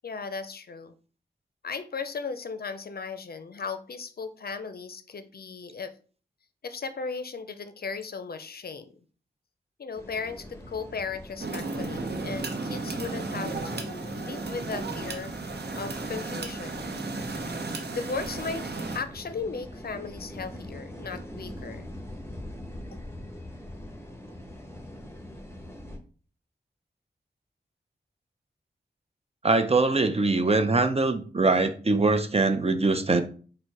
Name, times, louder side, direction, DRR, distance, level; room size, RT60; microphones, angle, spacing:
voice 1, 0.0-0.9 1.6-5.9 6.6-8.9 9.8-16.9 17.9-21.9, left 5 dB, 60° left, 11 dB, 0.5 m, -36 dB
sound 1, 9.9-26.0, left 1 dB, 15° left, 1.0 m, -43 dB
sound 2, 11.4-19.0, right 3 dB, 70° right, 0.8 m, -34 dB
voice 2, 29.4-33.2, right 3 dB, 35° right, 9 dB, 0.6 m, -23 dB
4.4 x 2.2 x 4.6 m, 0.40 s
cardioid pair, 45°, 18 cm